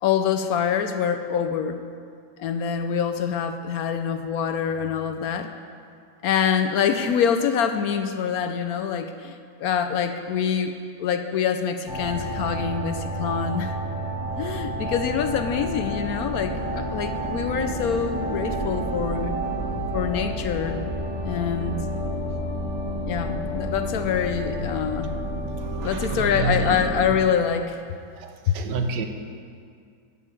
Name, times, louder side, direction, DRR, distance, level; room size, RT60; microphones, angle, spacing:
voice 1, 0.0-1.8 2.4-5.5 6.2-13.7 14.3-19.3 19.9-20.8 21.2-21.8 23.1-25.2 25.8-27.8 28.5-28.6, left 7 dB, 70° left, 8 dB, 1.0 m, -25 dB
sound 1, 11.9-27.1, right 1 dB, 15° left, 2.3 m, -30 dB
voice 2, 25.5-26.8 28.2-29.1, right 4 dB, 85° right, 6 dB, 1.5 m, -29 dB
12.5 x 4.8 x 8.7 m, 2.2 s
omnidirectional pair, 1.8 m